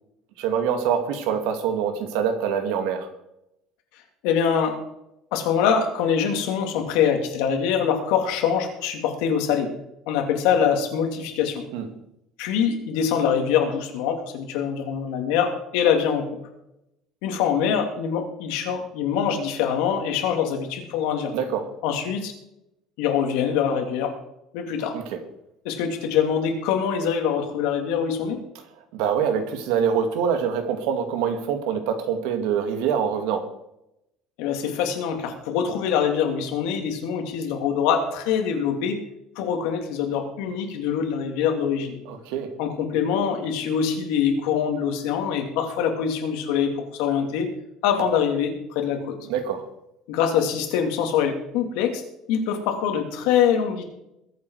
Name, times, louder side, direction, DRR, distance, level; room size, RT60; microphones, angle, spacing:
voice 1, 0.4-3.1 11.7-11.9 21.3-21.7 24.9-25.0 28.9-33.5 42.1-42.5 49.3-49.6, right 7 dB, 85° right, 7 dB, 2.3 m, -25 dB
voice 2, 4.2-4.8 5.3-9.7 10.1-11.6 12.4-16.3 17.2-21.3 21.8-22.3 23.0-24.1 24.5-25.0 25.6-28.4 34.4-39.0 39.4-42.0 42.6-47.5 47.8-49.1 50.1-52.0 52.3-53.8, left 7 dB, 85° left, 3 dB, 3.0 m, -24 dB
21.5 x 8.6 x 4.9 m, 0.84 s
cardioid pair, 175°, 0 cm